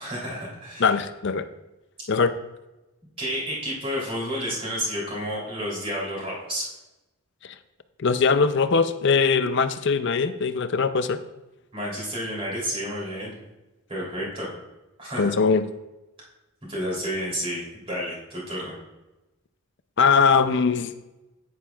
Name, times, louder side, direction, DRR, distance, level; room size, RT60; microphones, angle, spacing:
voice 1, 0.0-1.0 3.2-6.7 11.7-13.3 13.9-14.5 15.0-15.3 16.7-18.7, equal, 25° right, -4 dB, 3.2 m, -30 dB
voice 2, 0.8-1.5 2.1-2.3 8.0-11.2 15.2-15.7 20.0-21.0, left 5 dB, 50° left, 11 dB, 0.5 m, -21 dB
10.0 x 9.5 x 2.4 m, 1.0 s
head